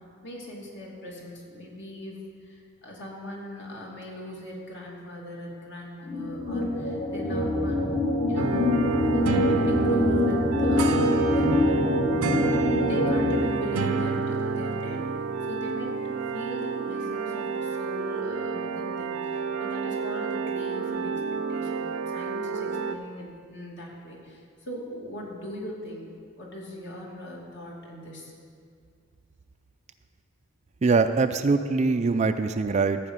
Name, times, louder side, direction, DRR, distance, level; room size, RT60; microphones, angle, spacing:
voice 1, 0.2-7.9 8.3-8.7 9.1-11.8 12.7-15.1 15.5-16.0 16.3-28.3, left 1 dB, 55° left, -3 dB, 2.5 m, -40 dB
sound 1, 6.0-13.4, left 1 dB, 35° left, 1.3 m, -24 dB
sound 2, 8.4-23.0, right 4 dB, 85° right, 0.6 m, -29 dB
voice 2, 30.8-33.0, right 4 dB, 30° right, 9 dB, 0.3 m, -23 dB
14.5 x 5.0 x 8.0 m, 2.2 s
head